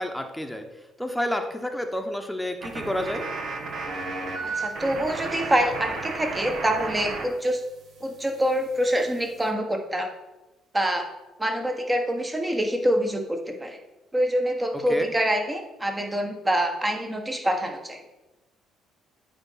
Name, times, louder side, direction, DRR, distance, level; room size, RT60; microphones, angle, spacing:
voice 1, 0.0-3.3 14.7-15.1, left 1 dB, 5° left, 4 dB, 1.2 m, -30 dB
sound 1, 2.6-7.3 7.5-9.5, right 3 dB, 60° right, 1.3 m, -34 dB
voice 2, 4.4-7.6 8.0-10.1 10.7-11.1 11.4-13.8 14.1-18.0, equal, 15° right, 4 dB, 1.4 m, -25 dB
8.7 x 3.7 x 5.7 m, 1.0 s
hypercardioid pair, 50°, 0 cm